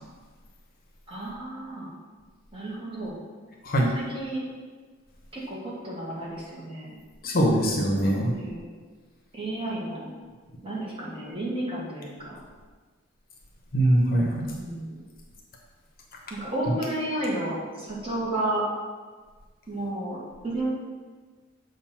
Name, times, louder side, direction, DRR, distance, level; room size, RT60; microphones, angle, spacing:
voice 1, 1.1-1.9 2.5-3.2 3.9-4.4 5.3-7.0 8.1-8.6 9.3-10.1 10.6-12.4 14.6-15.0 16.3-18.6 19.7-20.7, right 1 dB, 25° right, -6 dB, 1.5 m, -32 dB
voice 2, 3.6-3.9 7.2-8.3 13.7-14.5, right 1 dB, 45° left, -1 dB, 0.9 m, -22 dB
7.2 x 2.6 x 5.8 m, 1.4 s
head